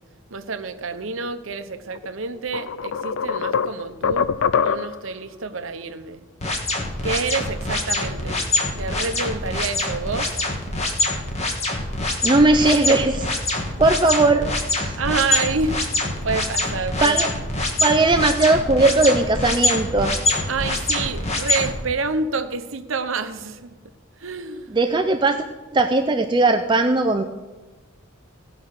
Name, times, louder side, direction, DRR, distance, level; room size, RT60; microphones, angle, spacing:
voice 1, 0.3-4.3 4.6-6.2 7.0-8.4 8.8-10.4 15.0-17.3 20.5-23.7 24.2-24.7, right 4 dB, 70° right, 9 dB, 0.9 m, -28 dB
sound 1, 1.9-2.1 2.5-5.1, left 6 dB, 65° left, 0.4 m, -23 dB
sound 2, 6.4-21.7, left 2 dB, 30° left, 1.6 m, -24 dB
voice 2, 12.2-15.0 17.0-17.3 17.8-20.2 24.7-25.5 25.7-27.2, right 2 dB, 20° right, 7 dB, 0.4 m, -19 dB
16.5 x 6.0 x 6.6 m, 1.2 s
head